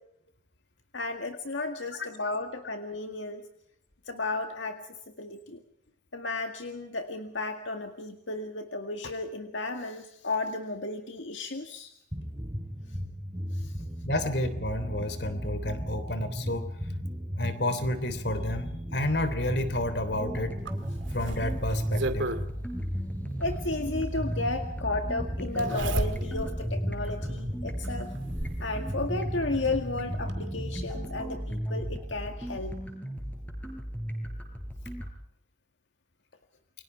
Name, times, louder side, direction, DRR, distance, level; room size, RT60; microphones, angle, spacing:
voice 1, 0.9-3.4 4.1-5.6 6.1-11.9 13.5-13.7 23.4-28.1 28.6-32.7, left 2 dB, 80° left, 5 dB, 2.0 m, -33 dB
sound 1, 12.1-30.9, equal, 15° right, 4.3 m, -36 dB
voice 2, 14.0-16.7 17.3-20.6 21.1-22.3, left 1 dB, 60° left, 11 dB, 3.2 m, -30 dB
sound 2, 19.6-35.1, equal, 10° left, 5.1 m, -37 dB
Zipper (clothing), 20.7-22.4 23.9-24.0 25.6-26.6 27.0-27.1 27.8-28.7 29.9-30.0 30.3-30.4, right 1 dB, 80° right, 2.3 m, -33 dB
29.0 x 24.0 x 4.6 m, 0.70 s
head